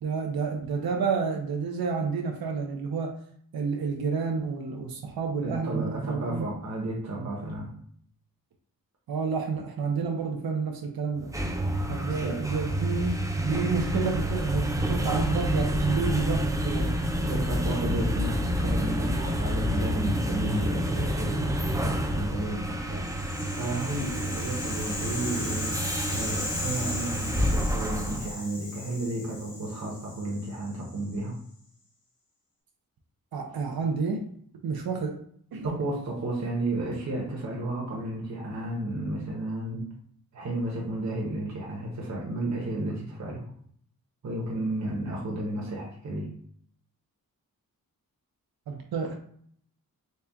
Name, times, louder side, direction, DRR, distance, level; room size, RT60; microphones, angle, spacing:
voice 1, 0.0-3.2 3.5-6.4 7.1-7.3 9.1-11.3 11.9-17.0 33.3-34.3 34.6-35.2 35.5-35.8 48.7-49.2, right 5 dB, 80° right, 2 dB, 0.7 m, -30 dB
voice 2, 5.4-7.7 12.1-12.4 17.3-31.4 35.6-39.8 40.3-43.4 44.2-46.3, right 1 dB, 50° right, -3 dB, 0.9 m, -33 dB
sound 1, 11.2-28.3, equal, 10° right, 0.4 m, -29 dB
Rattle (instrument), 23.0-31.2, left 2 dB, 75° left, 1.3 m, -37 dB
4.2 x 2.3 x 3.4 m, 0.62 s
wide cardioid pair, 135°, 36 cm